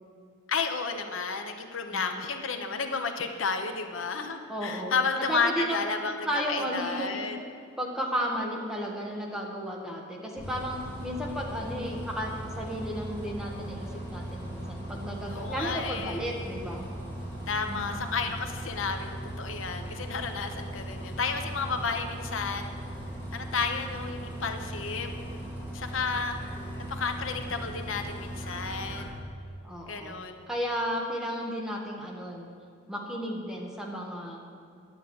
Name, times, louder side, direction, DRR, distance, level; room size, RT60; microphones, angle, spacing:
voice 1, 0.5-7.4 15.3-16.2 17.5-22.7 23.3-25.1 25.7-26.4 26.9-29.2 29.9-30.4, left 5 dB, 80° left, 6 dB, 1.0 m, -32 dB
voice 2, 1.9-2.2 4.5-4.9 5.2-7.2 7.8-16.9 17.7-18.0 29.6-30.2 30.5-32.5 32.9-34.4, equal, 5° right, -2 dB, 1.5 m, -34 dB
Bus, 10.4-29.0, right 1 dB, 15° left, 3.0 m, -38 dB
10.0 x 9.1 x 7.8 m, 2.3 s
head